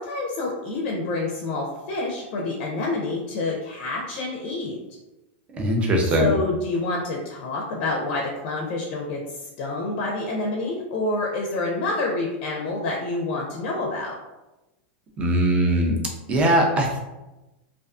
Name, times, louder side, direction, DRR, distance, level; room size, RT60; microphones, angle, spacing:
voice 1, 0.0-4.8 6.2-14.2, left 2 dB, 45° left, -1 dB, 0.4 m, -28 dB
voice 2, 5.6-6.3 15.2-16.0 16.3-17.0, right 1 dB, 20° right, 0 dB, 0.4 m, -20 dB
2.4 x 2.4 x 2.3 m, 1.0 s
supercardioid pair, 150°, 6 cm